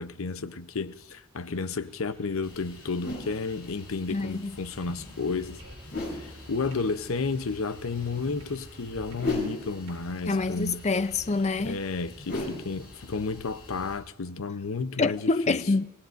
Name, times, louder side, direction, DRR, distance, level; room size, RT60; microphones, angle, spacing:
voice 1, 0.0-5.6 6.1-10.8 11.6-15.6, left 4 dB, 65° left, 0.7 m, -32 dB
sound 1, 1.3-8.1, equal, 5° left, 8.0 m, -54 dB
sound 2, 2.4-14.0, left 2 dB, 50° left, 7.5 m, -39 dB
voice 2, 4.1-4.6 10.3-11.8 15.0-15.8, left 3 dB, 30° left, 0.5 m, -26 dB
sound 3, 4.5-12.0, equal, 70° right, 6.9 m, -52 dB
29.5 x 17.5 x 2.6 m
head